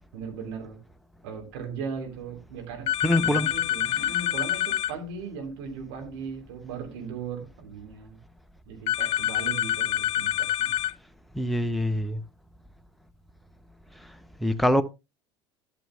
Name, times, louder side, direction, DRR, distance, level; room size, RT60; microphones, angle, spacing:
voice 1, 0.1-0.8 1.2-8.2 8.7-10.7, right 5 dB, 60° right, 3.1 m, -38 dB
sound 1, 2.9-4.9 8.9-10.9, left 12 dB, 40° left, 0.4 m, -26 dB
voice 2, 3.0-3.5 11.3-12.2 14.4-14.8, left 1 dB, ahead, 0.8 m, -24 dB
11.0 x 9.1 x 3.4 m
figure-of-eight pair, 70°, 15 cm